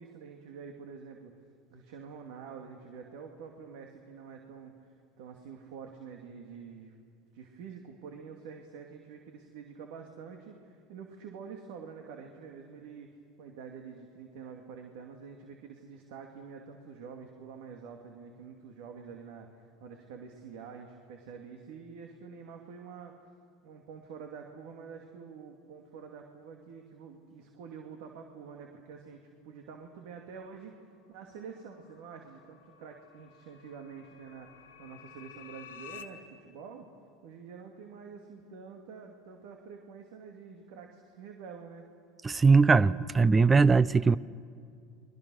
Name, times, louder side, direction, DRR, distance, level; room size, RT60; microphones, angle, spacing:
voice 1, 0.0-1.3 1.7-6.9 7.3-13.1 13.4-23.2 23.6-36.9 37.2-41.9, right 6 dB, 75° right, 3 dB, 2.4 m, -47 dB
sound 1, 31.7-36.0, left 9 dB, 90° left, 1.9 m, -51 dB
voice 2, 42.2-44.2, right 4 dB, 20° right, 19 dB, 0.6 m, -21 dB
29.5 x 22.0 x 6.4 m, 2.3 s
supercardioid pair, 95°, 0 cm